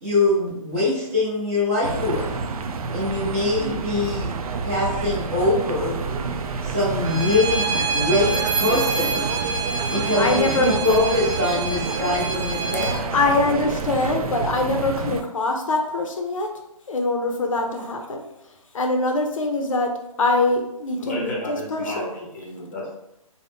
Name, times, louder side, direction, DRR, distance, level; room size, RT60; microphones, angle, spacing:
voice 1, 0.0-2.3 2.9-4.3 4.6-5.9 6.2-6.3 6.6-9.3 9.9-13.0, left 2 dB, 20° right, -7 dB, 0.7 m, -23 dB
sound 1, 1.8-15.2, right 5 dB, 80° right, 0.4 m, -28 dB
Bowed string instrument, 7.0-13.0, right 4 dB, 55° right, 0.8 m, -28 dB
voice 2, 10.1-10.8 13.1-16.5 16.9-18.2 18.7-22.1, left 2 dB, 65° left, 3 dB, 0.5 m, -23 dB
voice 3, 21.0-22.9, left 1 dB, 25° left, -3 dB, 0.7 m, -32 dB
2.5 x 2.0 x 3.4 m, 0.84 s
hypercardioid pair, 170°, 18 cm